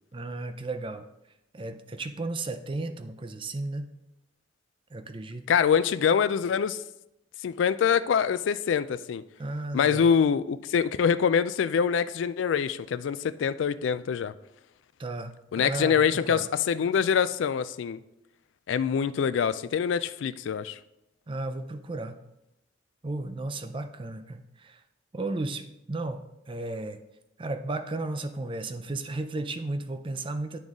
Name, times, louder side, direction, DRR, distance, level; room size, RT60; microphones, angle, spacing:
voice 1, 0.1-1.1 1.5-3.9 4.9-5.5 9.4-10.1 15.0-16.5 21.3-22.2 23.0-24.8 25.1-27.0 27.4-30.6, right 2 dB, 30° right, 9 dB, 0.4 m, -34 dB
voice 2, 5.5-6.8 7.4-9.2 9.7-14.3 15.5-18.0 18.7-20.8, left 7 dB, 90° left, 14 dB, 0.3 m, -25 dB
10.5 x 3.9 x 3.6 m, 0.88 s
head